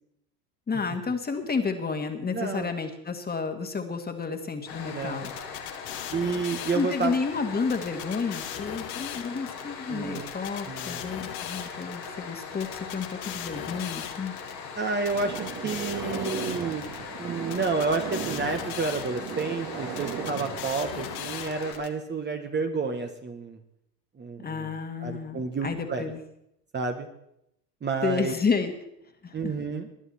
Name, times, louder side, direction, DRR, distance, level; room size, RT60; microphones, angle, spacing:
voice 1, 0.7-5.3 6.7-14.3 24.4-26.2 28.0-28.7 29.2-29.5, left 5 dB, 20° left, 6 dB, 1.9 m, -31 dB
voice 2, 2.3-2.8 4.9-5.3 6.1-7.2 9.9-10.2 10.7-11.1 14.8-16.9 17.2-23.6 24.2-24.7 25.0-26.1 26.7-27.1 27.8-28.3 29.3-29.9, right 4 dB, 20° right, 5 dB, 1.4 m, -30 dB
sound 1, 4.7-21.7, left 6 dB, 90° left, 4.1 m, -40 dB
sound 2, 5.2-7.2 7.7-9.6 10.2-12.1 12.6-14.5 15.1-17.0 17.5-19.4 20.0-21.9, left 11 dB, 50° left, 1.7 m, -39 dB
sound 3, 15.1-21.5, right 8 dB, 40° right, 1.9 m, -37 dB
20.5 x 11.0 x 4.3 m, 0.79 s
hypercardioid pair, 90°, 49 cm